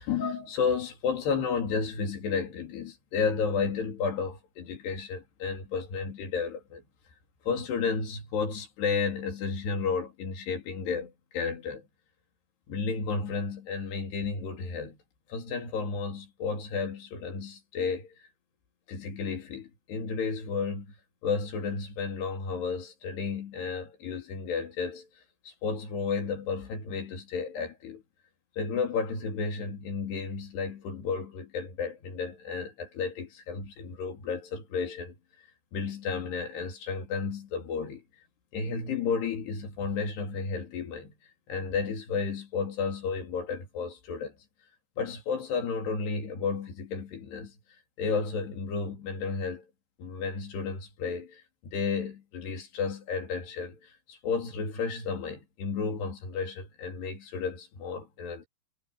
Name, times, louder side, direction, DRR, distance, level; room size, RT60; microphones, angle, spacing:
voice 1, 0.0-6.8 7.5-11.9 12.7-15.0 15.3-18.1 18.9-20.9 21.2-25.1 25.5-28.0 28.6-35.2 35.7-38.0 38.5-41.1 41.5-44.3 45.0-47.5 48.0-49.7 50.0-58.5, left 5 dB, 85° left, 5.5 m, -32 dB
omnidirectional pair, 4.7 m